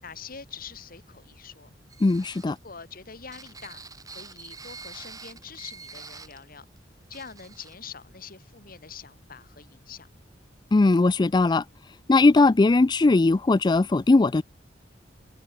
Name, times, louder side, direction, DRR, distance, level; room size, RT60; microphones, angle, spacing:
voice 1, 0.0-1.7 2.4-6.6 7.1-10.1, left 6 dB, 55° left, 2.8 m, -44 dB
sound 1, 1.9-6.4 6.8-6.9 7.1-7.7, right 4 dB, 20° right, 4.7 m, -45 dB
voice 2, 2.0-2.6 10.7-11.6 12.1-14.4, left 3 dB, 25° left, 0.4 m, -19 dB
head